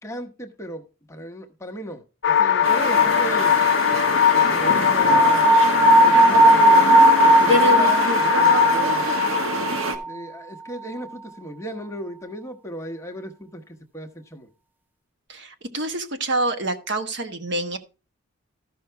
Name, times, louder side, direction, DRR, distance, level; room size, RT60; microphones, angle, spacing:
voice 1, 0.0-3.6 4.3-6.9 7.2-9.2 10.0-14.5, equal, 15° left, 5 dB, 1.0 m, -36 dB
sound 1, 2.2-9.8, left 9 dB, 55° left, 0.4 m, -20 dB
sound 2, 2.6-10.0, right 1 dB, 80° right, 1.6 m, -26 dB
sound 3, 5.0-10.1, right 3 dB, 10° right, 0.5 m, -18 dB
voice 2, 15.3-17.8, right 2 dB, 55° right, 8 dB, 1.2 m, -27 dB
13.5 x 5.6 x 4.5 m, 0.32 s
head